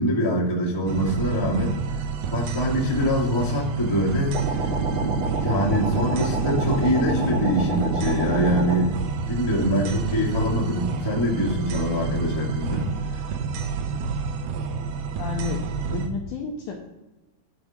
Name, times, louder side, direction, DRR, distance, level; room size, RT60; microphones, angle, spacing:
voice 1, 0.0-1.8 2.3-4.4 5.0-9.0 9.3-13.2, equal, 20° left, -6 dB, 0.8 m, -24 dB
sound 1, 0.9-16.1, right 5 dB, 75° right, 2.1 m, -29 dB
sound 2, 4.3-8.8, right 3 dB, 50° right, 2.6 m, -27 dB
voice 2, 15.2-15.6 15.9-16.8, left 6 dB, 75° left, 1 dB, 1.9 m, -31 dB
11.0 x 4.0 x 5.8 m, 1.0 s
omnidirectional pair, 4.5 m